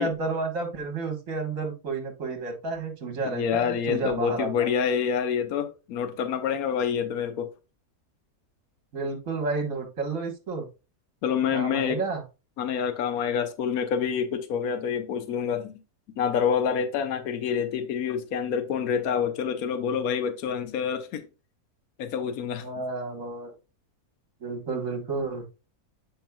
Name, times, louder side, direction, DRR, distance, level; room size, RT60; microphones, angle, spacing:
voice 1, 0.0-4.7 8.9-10.7 11.5-12.2 22.6-23.5 24.4-25.4, right 3 dB, 60° right, 1.9 m, -31 dB
voice 2, 3.2-7.5 11.2-12.0 12.6-15.8 16.2-21.2 22.0-22.7, left 7 dB, 70° left, 1.3 m, -27 dB
8.7 x 5.2 x 2.3 m
omnidirectional pair, 1.6 m